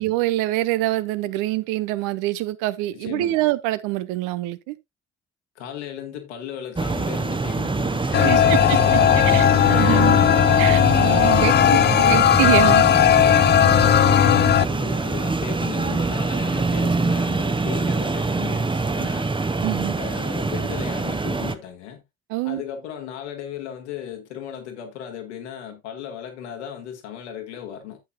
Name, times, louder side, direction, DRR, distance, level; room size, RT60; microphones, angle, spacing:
voice 1, 0.0-4.7 8.2-8.6 9.3-10.2 10.6-11.5 12.0-12.9 13.4-13.5 19.6-20.0 22.3-22.6, right 17 dB, 65° right, 0.8 m, -25 dB
voice 2, 2.9-3.4 5.6-9.4 9.9-10.6 11.0-12.1 13.8-14.3 14.6-19.4 20.0-22.0 22.4-28.0, left 9 dB, 75° left, 1.9 m, -36 dB
sound 1, 6.8-21.5, right 3 dB, 15° right, 1.0 m, -25 dB
sound 2, 8.1-14.6, left 10 dB, 30° left, 0.5 m, -16 dB
11.5 x 8.3 x 2.2 m
figure-of-eight pair, 40°, 35 cm